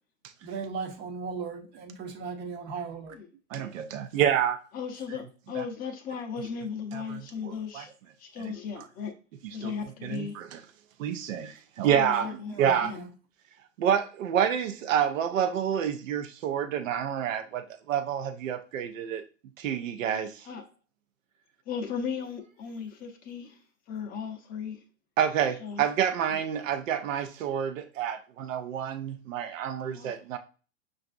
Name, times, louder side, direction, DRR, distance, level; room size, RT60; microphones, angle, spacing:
voice 1, 0.4-3.2 12.2-13.1, right 5 dB, 25° right, 0.7 m, -37 dB
voice 2, 3.5-4.6 5.6-5.7 6.9-7.8 8.8-8.9 9.6-9.7 10.0-10.6 11.0-12.3 12.6-12.9 13.8-19.2 19.6-20.3 25.2-30.4, right 9 dB, 70° right, 0.6 m, -28 dB
voice 3, 4.7-7.9 8.2-9.1 9.5-10.4 11.8-13.0 20.4-20.7 21.7-23.6 23.9-24.8 25.6-25.9 26.3-26.4 29.8-30.2, left 6 dB, 20° left, 0.6 m, -36 dB
5.6 x 2.5 x 2.4 m
hypercardioid pair, 110°, 40 cm